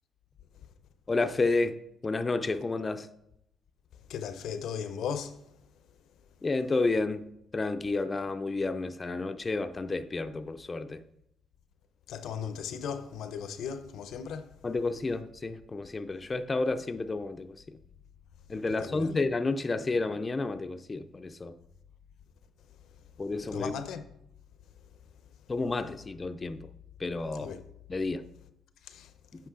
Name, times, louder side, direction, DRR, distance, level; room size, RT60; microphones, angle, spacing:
voice 1, 1.1-1.8 2.0-3.1 6.4-7.3 7.5-11.0 14.6-17.5 18.5-21.5 23.2-23.7 25.5-26.6 27.0-27.5 27.9-28.2, left 3 dB, 25° left, 0.4 m, -30 dB
voice 2, 4.1-5.3 12.1-14.5 18.7-19.1 23.5-24.1 27.4-27.6 28.9-29.1, left 7 dB, 80° left, 0.6 m, -37 dB
8.5 x 5.1 x 3.8 m
cardioid pair, 90°, 0 cm